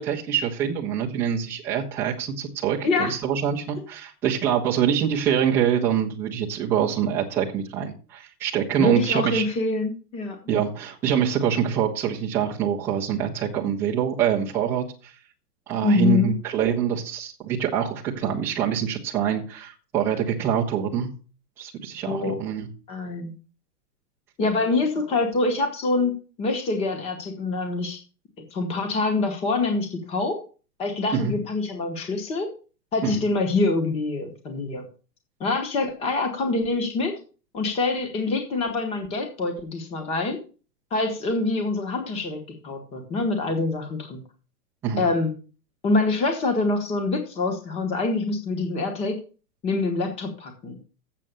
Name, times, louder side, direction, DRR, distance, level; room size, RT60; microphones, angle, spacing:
voice 1, 0.0-9.4 10.5-15.1 15.7-21.1 21.6-22.7 31.1-31.3 33.0-33.2 44.8-45.1, right 8 dB, 5° right, -4 dB, 0.5 m, -25 dB
voice 2, 2.8-3.1 8.8-10.4 15.8-16.3 22.0-22.4 22.9-23.3 24.4-28.0 28.5-30.4 30.8-32.5 32.9-34.8 35.4-37.2 37.5-40.4 40.9-44.2 45.0-45.3 45.8-49.2 49.6-50.8, left 3 dB, 15° left, 5 dB, 1.0 m, -25 dB
7.6 x 7.5 x 6.7 m, 0.37 s
supercardioid pair, 165°, 49 cm